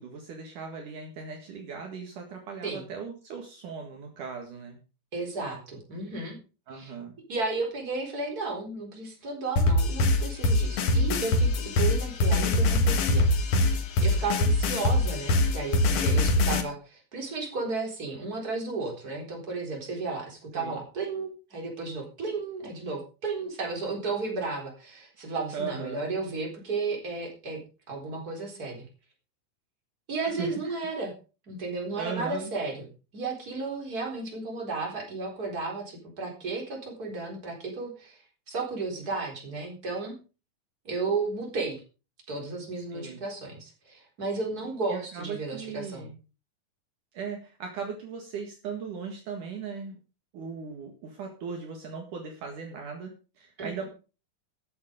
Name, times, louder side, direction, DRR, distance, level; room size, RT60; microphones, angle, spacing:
voice 1, 0.0-4.8 6.7-7.1 20.5-20.8 25.5-26.1 30.2-30.7 31.9-32.5 42.9-43.2 44.9-46.2 47.1-50.0 50.3-53.8, right 5 dB, 65° right, 3 dB, 3.2 m, -38 dB
voice 2, 5.1-6.4 6.7-6.9 7.3-13.3 14.0-27.6 27.9-28.8 30.1-31.1 31.5-32.9 33.1-38.2 38.5-40.2 40.8-41.8 42.3-46.1 53.6-53.8, right 3 dB, 25° right, 1 dB, 4.2 m, -33 dB
sound 1, 9.6-16.6, left 2 dB, 55° left, 2.2 m, -23 dB
14.0 x 8.8 x 5.1 m, 0.34 s
omnidirectional pair, 4.2 m